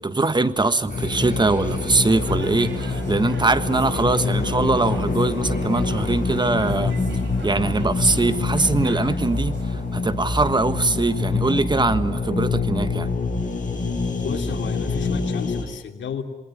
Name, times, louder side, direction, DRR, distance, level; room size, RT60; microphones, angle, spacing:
voice 1, 0.0-7.0 7.4-13.1, right 3 dB, 25° right, 12 dB, 1.4 m, -22 dB
sound 1, 0.9-15.6, left 3 dB, 45° left, 6.7 m, -25 dB
sound 2, 1.1-11.5, right 5 dB, 90° right, 4.2 m, -43 dB
voice 2, 14.2-16.2, left 7 dB, 80° left, 4 dB, 3.1 m, -32 dB
27.5 x 21.0 x 9.9 m, 1.1 s
cardioid pair, 90°, 19 cm